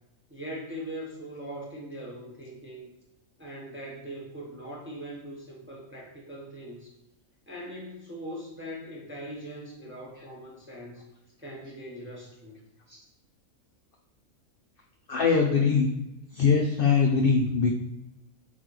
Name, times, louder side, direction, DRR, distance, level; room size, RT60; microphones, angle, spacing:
voice 1, 0.3-2.9 3.4-6.9 7.5-11.1 11.4-12.6, equal, 10° right, -4 dB, 0.6 m, -41 dB
voice 2, 15.1-15.9 16.3-17.7, left 5 dB, 65° left, 0 dB, 0.5 m, -22 dB
4.0 x 3.8 x 3.1 m, 0.93 s
omnidirectional pair, 1.5 m